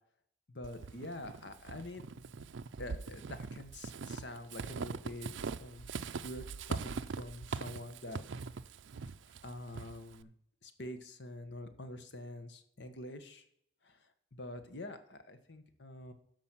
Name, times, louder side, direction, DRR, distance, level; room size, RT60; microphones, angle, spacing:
voice 1, 0.5-2.1 2.8-5.3 5.6-8.4 9.4-10.3 10.6-13.4 13.8-14.0 14.3-16.1, left 1 dB, 65° left, 9 dB, 1.2 m, -46 dB
Walk footsteps / Squeak, 0.6-10.2, right 5 dB, 90° right, 0.5 m, -42 dB
12.5 x 5.1 x 5.9 m, 0.71 s
head